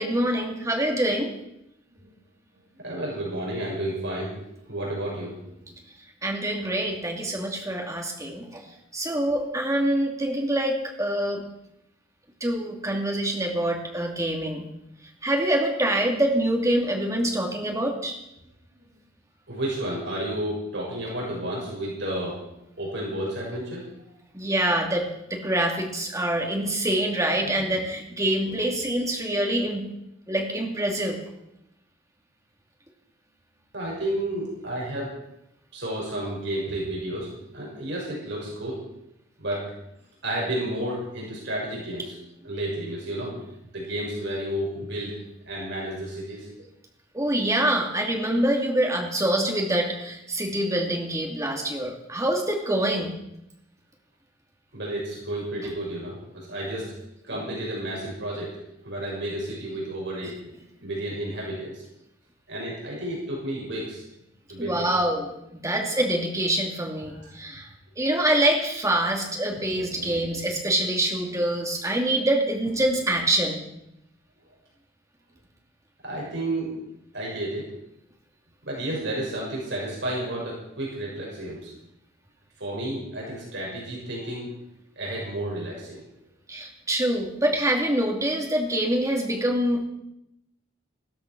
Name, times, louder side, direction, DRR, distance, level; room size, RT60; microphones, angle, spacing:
voice 1, 0.0-1.3 6.2-8.6 8.9-11.4 12.4-14.6 15.2-18.1 24.3-29.9 30.3-31.2 47.1-53.1 64.6-65.3 65.5-67.7 68.0-73.6 86.5-89.8, right 1 dB, 15° right, 1 dB, 2.7 m, -25 dB
voice 2, 2.8-5.6 19.5-22.4 22.8-23.8 27.4-27.8 28.4-28.6 33.7-35.2 35.7-38.8 39.4-39.7 40.2-43.3 43.7-45.2 45.5-46.5 54.7-56.9 57.2-60.4 60.8-61.8 62.5-64.0 64.5-64.9 67.2-67.3 69.5-70.2 76.0-76.7 77.1-77.8 78.6-81.7 82.6-84.5 85.0-86.0, right 1 dB, 60° right, -4 dB, 6.3 m, -32 dB
15.0 x 13.5 x 6.2 m, 0.83 s
head